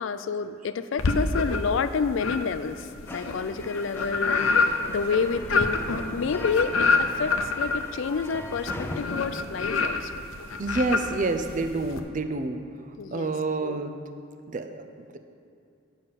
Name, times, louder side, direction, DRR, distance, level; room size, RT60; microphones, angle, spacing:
voice 1, 0.0-5.8 6.1-10.1 13.0-13.3 13.6-13.8, left 5 dB, 65° left, 12 dB, 0.4 m, -29 dB
sound 1, 1.0-1.8 2.2-12.0, left 4 dB, 90° left, 0.7 m, -27 dB
sound 2, 3.1-9.0, left 1 dB, 10° left, 0.5 m, -41 dB
voice 2, 10.6-12.6 13.1-14.0 14.5-14.8, right 3 dB, 40° right, 7 dB, 0.5 m, -28 dB
9.1 x 5.5 x 6.9 m, 2.5 s
head